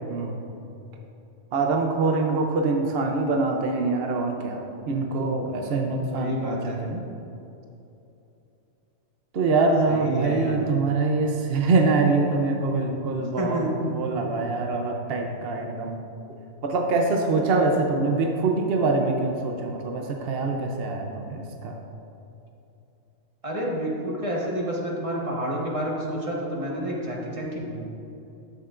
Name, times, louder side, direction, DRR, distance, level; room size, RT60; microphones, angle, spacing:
voice 1, 1.5-7.0 9.3-16.0 16.6-21.8, right 3 dB, 55° right, 2 dB, 0.8 m, -24 dB
voice 2, 6.1-6.8 9.9-10.6 13.4-13.7 23.4-27.9, right 1 dB, 25° right, -4 dB, 1.4 m, -29 dB
13.5 x 6.6 x 2.5 m, 2.9 s
omnidirectional pair, 1.4 m